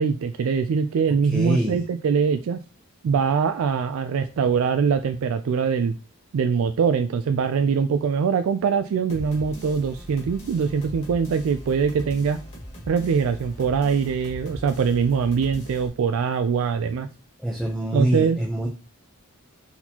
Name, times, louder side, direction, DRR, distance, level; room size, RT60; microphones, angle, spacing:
voice 1, 0.0-2.6 3.0-6.0 6.3-12.4 12.9-17.1 17.9-18.4, right 6 dB, 70° right, 9 dB, 0.3 m, -23 dB
voice 2, 1.2-1.8 17.4-18.7, right 1 dB, ahead, -1 dB, 0.6 m, -25 dB
sound 1, 9.1-15.9, equal, 30° left, 1.7 m, -40 dB
4.2 x 4.1 x 2.8 m, 0.32 s
head